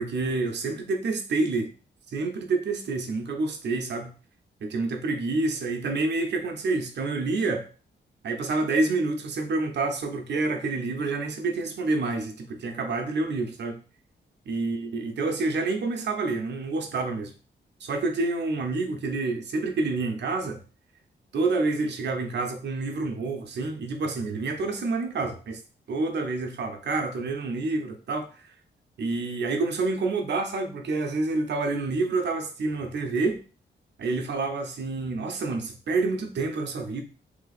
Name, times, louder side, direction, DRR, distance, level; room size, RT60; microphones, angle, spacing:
voice 1, 0.0-1.7 2.1-4.1 4.6-7.6 8.2-13.8 14.5-17.3 17.8-20.6 21.3-25.6 25.9-28.3 29.0-33.4 34.0-37.0, right 3 dB, 65° right, 0.8 m, -28 dB
3.4 x 3.0 x 4.1 m
wide cardioid pair, 165°, 19 cm